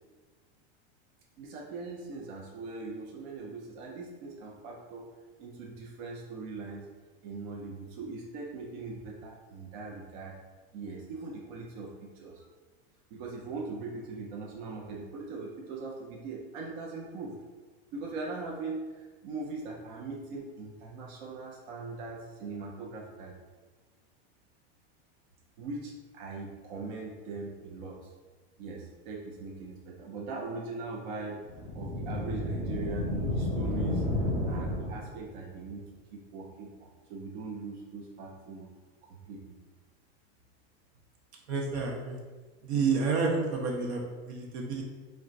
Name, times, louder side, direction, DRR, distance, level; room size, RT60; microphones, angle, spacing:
voice 1, 1.4-5.1 5.4-6.9 7.2-10.4 10.7-12.5 13.1-17.4 17.9-23.3 25.6-28.1 28.6-31.4 31.7-34.0 34.5-38.7 39.1-39.5, right 3 dB, 50° right, -2 dB, 0.4 m, -40 dB
sound 1, 31.5-35.3, left 1 dB, 20° right, 0.8 m, -31 dB
voice 2, 41.5-42.2 42.6-44.8, right 4 dB, 80° right, 0 dB, 0.8 m, -29 dB
2.4 x 2.1 x 3.8 m, 1.3 s
supercardioid pair, 165°, 33 cm